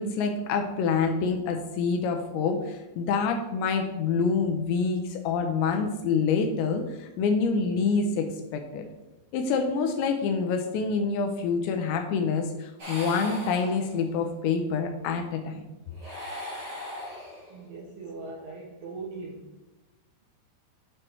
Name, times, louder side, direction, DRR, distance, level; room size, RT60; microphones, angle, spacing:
voice 1, 0.0-8.8 9.3-15.6, left 5 dB, 85° left, 4 dB, 2.7 m, -27 dB
sound 1, 12.8-14.3 15.9-17.7, left 1 dB, 60° right, 1.0 m, -39 dB
voice 2, 17.5-19.5, right 3 dB, 90° right, -1 dB, 2.3 m, -40 dB
8.8 x 3.2 x 4.5 m, 1.0 s
omnidirectional pair, 5.4 m